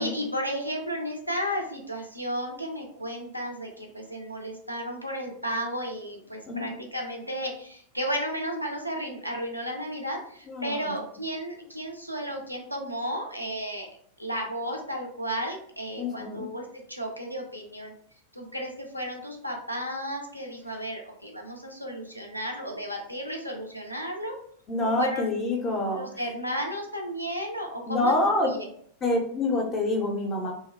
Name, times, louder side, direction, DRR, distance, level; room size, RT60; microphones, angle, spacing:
voice 1, 0.0-13.9 14.2-17.9 18.3-24.3 24.8-25.3 25.9-28.7, equal, 90° left, 1 dB, 0.4 m, -33 dB
voice 2, 10.5-11.0 16.0-16.5 24.7-26.0 27.9-28.5 29.0-30.5, left 2 dB, 25° left, 2 dB, 0.4 m, -26 dB
2.6 x 2.0 x 2.2 m, 0.62 s
figure-of-eight pair, 90°, 0 cm